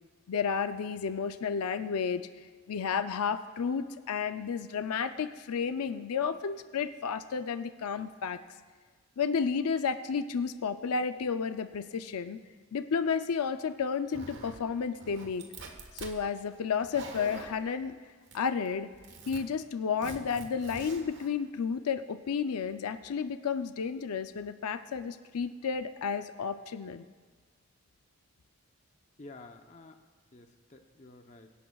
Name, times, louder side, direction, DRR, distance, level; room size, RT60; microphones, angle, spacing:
voice 1, 0.3-2.3 2.7-8.4 9.2-12.4 12.7-15.5 15.9-17.9 18.3-18.9 19.3-27.0, left 6 dB, 80° left, 10 dB, 0.5 m, -32 dB
Zipper (clothing), 14.1-14.7 15.0-16.2 16.7-17.6 18.3-18.7 18.9-19.4 20.0-21.3, right 3 dB, 50° right, 1.4 m, -45 dB
voice 2, 29.2-30.0 30.3-31.5, left 2 dB, 30° left, 5 dB, 0.7 m, -51 dB
23.5 x 11.0 x 2.3 m, 1.5 s
head